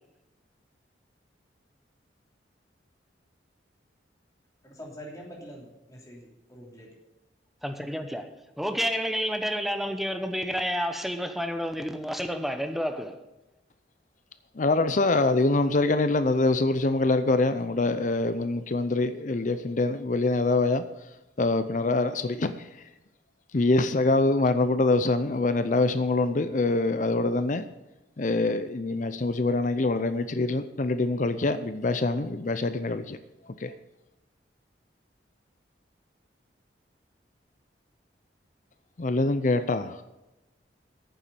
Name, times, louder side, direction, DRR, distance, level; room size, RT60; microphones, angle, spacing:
voice 1, 4.6-7.0, equal, 20° left, 3.1 m, -45 dB
voice 2, 7.6-13.2, equal, ahead, 0.8 m, -30 dB
voice 3, 14.6-20.8 21.4-22.7 23.5-27.6 28.2-33.2 33.6-33.7 39.0-40.0, left 2 dB, 45° left, 0.5 m, -24 dB
9.4 x 7.1 x 8.5 m
head